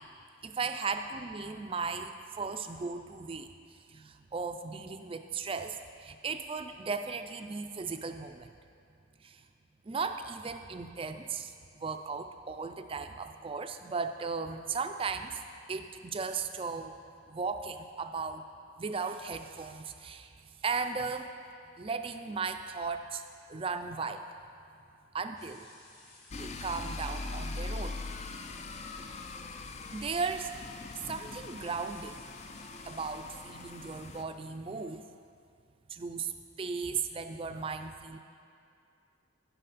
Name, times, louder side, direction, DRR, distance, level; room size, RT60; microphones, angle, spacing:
voice 1, 0.4-3.5 3.9-8.5 9.2-9.4 9.8-15.4 15.7-17.0 17.3-18.4 18.8-21.3 21.8-23.2 23.5-24.2 25.1-25.7 26.4-28.0 28.8-29.1 29.9-30.6 31.1-32.2 32.8-35.0 35.9-36.3 36.6-38.2, right 4 dB, 30° right, 8 dB, 0.4 m, -36 dB
sound 1, 25.4-33.2, left 2 dB, 55° left, 2.5 m, -57 dB
sound 2, 26.3-34.2, left 3 dB, 35° left, 0.4 m, -41 dB
15.5 x 5.8 x 4.1 m, 2.4 s
head